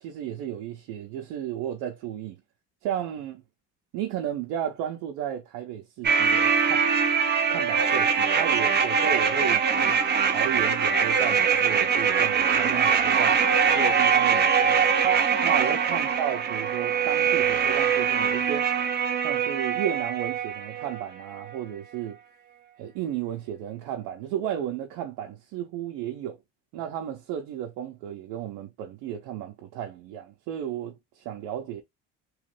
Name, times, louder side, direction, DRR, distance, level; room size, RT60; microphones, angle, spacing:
voice 1, 0.0-2.4 2.8-3.4 3.9-6.9 7.5-10.0 10.3-13.4 13.7-14.9 15.4-18.7 19.2-22.2 22.8-26.4 26.7-31.8, right 10 dB, 80° right, 0.7 m, -33 dB
sound 1, 6.0-21.1 21.3-21.4, right 6 dB, 30° right, 0.7 m, -23 dB
3.1 x 2.5 x 3.2 m
cardioid pair, 120°, 34 cm